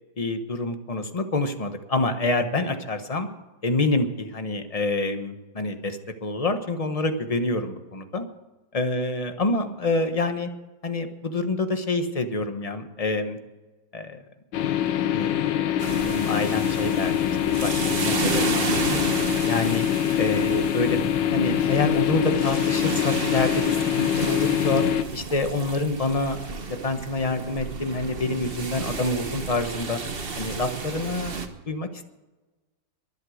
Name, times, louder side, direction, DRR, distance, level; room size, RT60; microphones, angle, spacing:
voice 1, 0.2-3.3 3.6-8.3 8.7-10.5 10.8-13.4 13.9-14.2 15.1-19.8 20.2-21.0 21.3-24.8 25.1-30.0 30.3-32.0, left 2 dB, 25° left, 7 dB, 1.1 m, -27 dB
sound 1, 14.5-25.0, left 10 dB, 80° left, 1.5 m, -24 dB
sound 2, 15.8-31.5, right 4 dB, 35° right, 1.2 m, -32 dB
23.0 x 8.2 x 6.5 m, 1.2 s
omnidirectional pair, 2.1 m